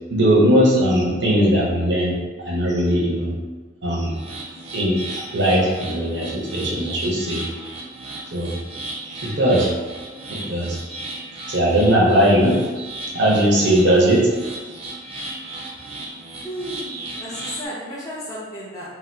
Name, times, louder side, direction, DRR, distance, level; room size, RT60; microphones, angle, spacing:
voice 1, 0.1-2.1 2.4-3.3 3.8-4.1 4.7-7.4 8.3-8.5 9.2-9.7 10.3-10.8 11.5-12.6 13.1-14.2, equal, 65° right, -4 dB, 0.8 m, -18 dB
sound 1, 4.1-17.7, right 2 dB, 30° right, 0.5 m, -35 dB
voice 2, 16.4-18.9, equal, 20° left, -7 dB, 0.5 m, -33 dB
2.8 x 2.3 x 3.3 m, 1.3 s
head